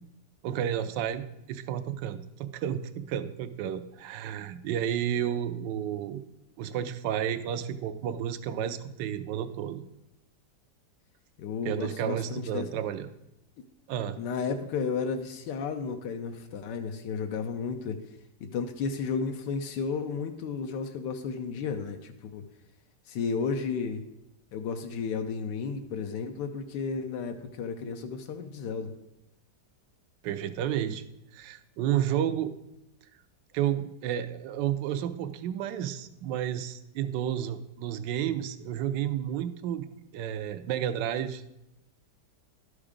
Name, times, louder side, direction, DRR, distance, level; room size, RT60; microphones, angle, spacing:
voice 1, 0.4-6.2 6.6-9.8 11.6-13.1 13.9-14.2 30.2-31.0 31.3-32.5 33.5-39.9 40.1-41.4, right 10 dB, 90° right, 11 dB, 1.3 m, -31 dB
voice 2, 11.4-12.7 14.2-18.0 18.4-22.4 23.1-24.0 24.5-28.9, left 5 dB, 90° left, 5 dB, 1.3 m, -33 dB
12.0 x 4.9 x 5.0 m, 0.85 s
omnidirectional pair, 1.8 m